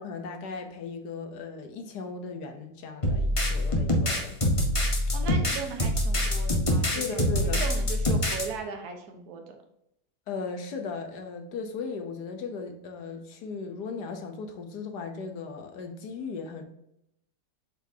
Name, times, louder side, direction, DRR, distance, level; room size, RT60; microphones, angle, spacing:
voice 1, 0.0-4.4 7.0-7.6 10.3-16.6, left 5 dB, 60° left, 5 dB, 1.3 m, -37 dB
sound 1, 3.0-8.5, left 1 dB, 25° left, 0.7 m, -25 dB
voice 2, 5.1-9.6, right 5 dB, 60° right, 4 dB, 1.4 m, -37 dB
8.1 x 4.4 x 2.8 m, 0.80 s
omnidirectional pair, 2.1 m